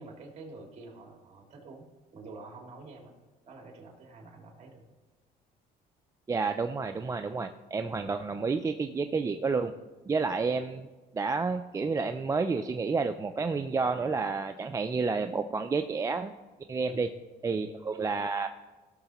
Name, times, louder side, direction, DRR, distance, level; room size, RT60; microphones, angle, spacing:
voice 1, 0.0-1.9 2.1-3.1 3.5-4.8 16.8-17.1 17.5-17.7, right 3 dB, 40° right, 1 dB, 2.2 m, -47 dB
voice 2, 6.3-9.7 10.1-10.9 11.1-16.3 16.7-17.1 17.4-18.5, right 4 dB, 20° right, 7 dB, 0.3 m, -30 dB
15.5 x 6.5 x 3.0 m, 1.2 s
cardioid pair, 110°, 17 cm